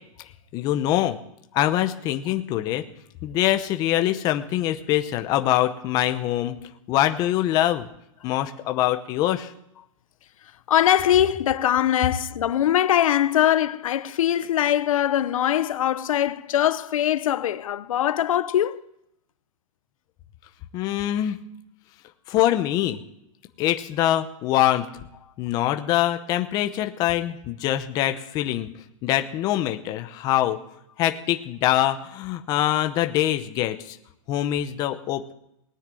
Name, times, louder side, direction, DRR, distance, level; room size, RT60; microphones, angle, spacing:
voice 1, 0.5-1.2 1.5-2.8 3.2-6.6 6.9-7.8 8.2-9.5 20.7-21.4 22.3-23.0 23.6-24.9 25.4-28.7 29.0-30.6 31.0-34.0 34.3-35.3, left 13 dB, 20° left, 0.8 m, -24 dB
voice 2, 10.7-18.8, left 11 dB, 75° left, 0.9 m, -22 dB
18.5 x 9.9 x 7.7 m
supercardioid pair, 170°, 18 cm